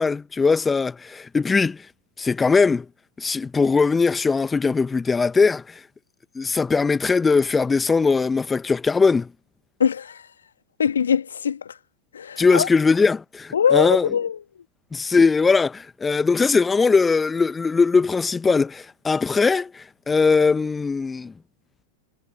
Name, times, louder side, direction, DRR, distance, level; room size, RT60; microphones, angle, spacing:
voice 1, 0.0-1.8 2.2-2.8 3.2-5.6 6.3-9.3 12.4-14.1 14.9-21.3, left 4 dB, 15° left, 1.2 m, -20 dB
voice 2, 9.8-10.2 10.8-11.6 12.1-12.7 13.5-14.4, left 7 dB, 70° left, 2.0 m, -22 dB
figure-of-eight pair, 90°, 0 cm